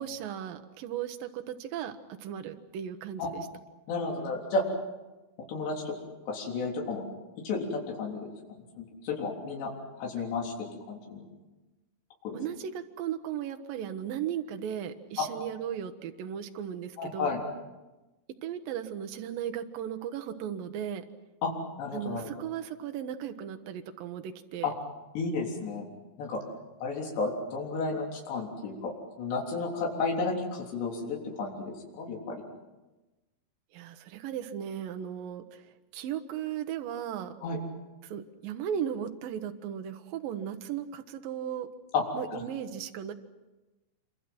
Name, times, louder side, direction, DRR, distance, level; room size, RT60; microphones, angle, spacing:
voice 1, 0.0-3.5 10.2-10.3 12.3-17.3 18.4-21.0 21.9-24.7 33.7-37.4 38.0-41.7 42.1-43.1, right 9 dB, 65° right, 7 dB, 2.4 m, -36 dB
voice 2, 3.9-4.6 5.5-6.0 6.3-7.0 7.4-8.3 8.8-9.7 10.0-10.5 10.9-11.2 12.2-12.4 17.0-17.4 21.4-21.5 21.8-22.3 24.6-24.7 25.2-25.9 26.2-26.4 26.8-28.9 29.2-32.4 37.4-37.6 41.9-42.0 42.3-42.4, left 4 dB, 65° left, -1 dB, 5.7 m, -32 dB
27.5 x 24.5 x 6.1 m, 1.1 s
omnidirectional pair, 5.4 m